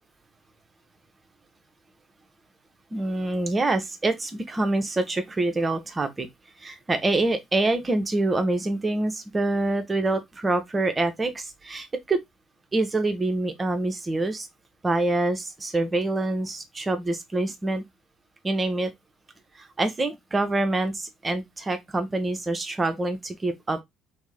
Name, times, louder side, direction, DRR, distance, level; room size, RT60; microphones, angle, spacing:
voice 1, 2.9-6.3 6.6-12.2 12.7-14.5 14.8-17.8 18.4-18.9 19.5-23.8, right 2 dB, 25° right, 0.8 m, -26 dB
3.0 x 2.7 x 3.7 m
figure-of-eight pair, 50°, 0 cm